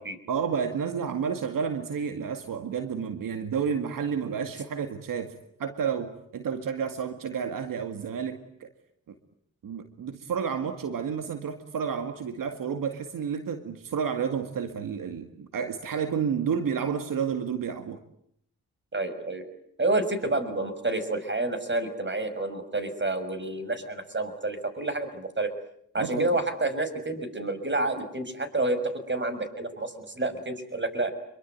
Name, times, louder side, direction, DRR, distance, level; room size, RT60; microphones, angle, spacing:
voice 1, 0.3-5.3 5.6-8.7 9.6-18.0 26.0-26.3, right 7 dB, 75° right, 8 dB, 2.1 m, -30 dB
voice 2, 18.9-19.4 19.8-25.5 25.9-31.1, right 2 dB, 35° right, 11 dB, 6.2 m, -29 dB
26.5 x 23.5 x 9.4 m, 0.71 s
supercardioid pair, 50°, 33 cm